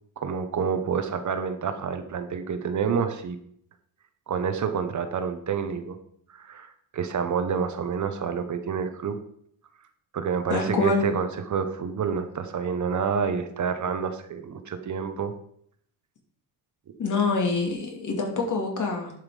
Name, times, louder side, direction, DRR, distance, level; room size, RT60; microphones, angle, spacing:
voice 1, 0.2-3.4 4.3-6.0 6.3-9.2 10.1-15.3, right 6 dB, 45° right, 8 dB, 1.0 m, -28 dB
voice 2, 10.5-11.0 17.0-19.1, left 4 dB, 45° left, 1 dB, 2.6 m, -25 dB
11.0 x 5.9 x 5.0 m, 0.67 s
cardioid pair, 130°, 41 cm